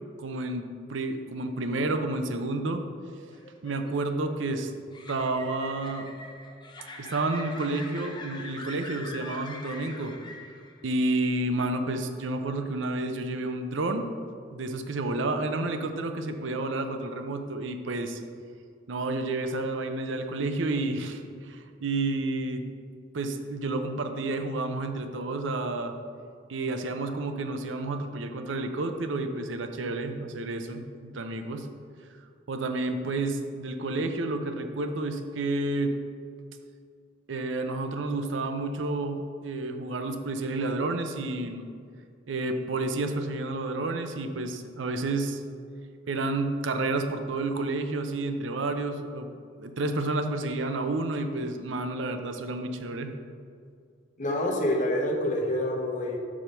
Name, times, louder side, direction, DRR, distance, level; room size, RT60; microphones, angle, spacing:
voice 1, 0.2-2.8 3.6-4.7 5.1-6.1 7.0-10.1 10.8-14.1 14.5-18.2 18.9-22.6 23.1-25.9 26.5-31.7 32.5-35.9 37.3-41.7 42.3-45.4 46.1-49.3 49.6-53.1, right 2 dB, 75° right, 7 dB, 0.6 m, -30 dB
sound 1, 3.3-10.9, left 2 dB, 25° left, 0.7 m, -44 dB
voice 2, 54.2-56.2, left 1 dB, 45° left, 0 dB, 1.0 m, -27 dB
5.8 x 4.9 x 5.4 m, 2.2 s
head